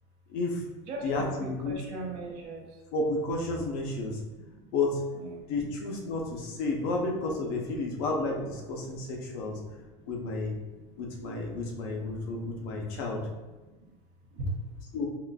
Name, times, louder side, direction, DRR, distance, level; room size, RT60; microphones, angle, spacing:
voice 1, 0.3-0.6 1.0-1.8 2.9-4.2 4.7-5.0 5.5-9.6 10.1-10.6 11.0-13.3 14.9-15.1, left 3 dB, 65° left, 0 dB, 0.6 m, -31 dB
voice 2, 0.9-2.8 3.9-4.7 5.1-5.7 6.2-6.3 8.8-10.3 10.8-11.3 11.7-13.0 13.7-14.0 14.3-14.5, right 2 dB, 45° right, 1 dB, 0.6 m, -42 dB
3.7 x 2.4 x 2.3 m, 1.2 s
cardioid pair, 175°, 14 cm